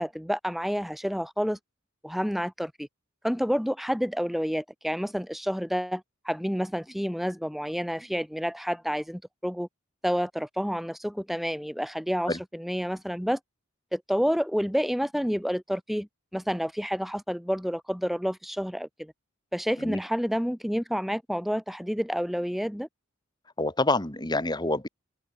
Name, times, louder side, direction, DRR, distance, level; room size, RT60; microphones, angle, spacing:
voice 1, 0.0-1.6 2.0-2.9 3.2-9.7 10.0-13.4 13.9-19.1 19.5-22.9, equal, ahead, 3.7 m, -29 dB
voice 2, 23.6-24.9, left 2 dB, 20° left, 3.3 m, -27 dB
head